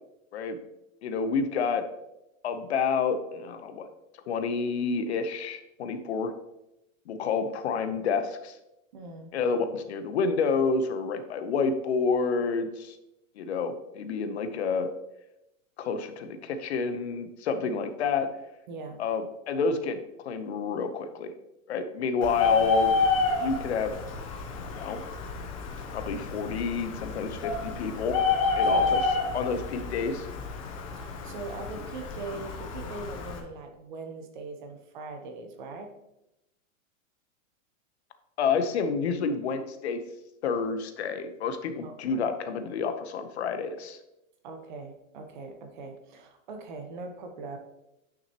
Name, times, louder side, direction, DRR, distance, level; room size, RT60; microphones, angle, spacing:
voice 1, 1.0-1.8 2.4-3.9 4.3-6.3 7.1-8.6 9.3-13.0 13.4-14.9 15.8-18.3 19.0-21.3 21.7-22.9 23.4-23.9 24.5-25.0 25.9-28.2 28.6-29.0 29.3-30.3 38.4-40.0 40.4-44.0, left 5 dB, 55° left, 9 dB, 0.8 m, -29 dB
voice 2, 8.9-9.3 18.7-19.0 28.6-29.0 31.0-35.9 41.8-42.3 44.4-47.6, right 3 dB, 35° right, 5 dB, 0.8 m, -41 dB
Bird, 22.2-33.4, left 4 dB, 25° left, 0.6 m, -29 dB
9.6 x 6.0 x 2.9 m, 0.89 s
supercardioid pair, 180°, 40 cm